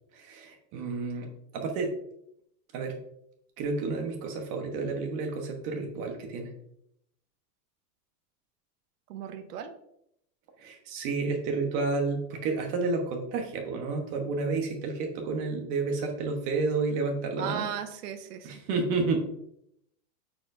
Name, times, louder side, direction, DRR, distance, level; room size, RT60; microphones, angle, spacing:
voice 1, 0.1-1.9 2.7-3.0 3.6-6.5 10.6-17.7 18.4-19.3, right 3 dB, 40° right, 3 dB, 1.1 m, -30 dB
voice 2, 9.1-9.7 17.4-18.6, right 9 dB, 85° right, 8 dB, 0.9 m, -36 dB
8.9 x 4.5 x 2.6 m, 0.76 s
supercardioid pair, 155°, 46 cm